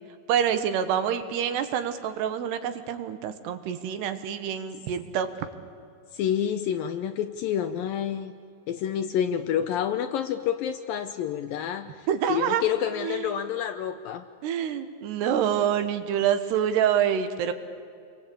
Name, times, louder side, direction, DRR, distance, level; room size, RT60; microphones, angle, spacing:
voice 1, 0.3-5.3 12.1-12.6 13.0-13.4 14.4-17.5, right 9 dB, 80° right, 9 dB, 3.4 m, -26 dB
voice 2, 6.1-8.3 8.7-14.3, left 9 dB, 75° left, 9 dB, 2.2 m, -28 dB
29.0 x 23.0 x 8.6 m, 2.4 s
omnidirectional pair, 4.7 m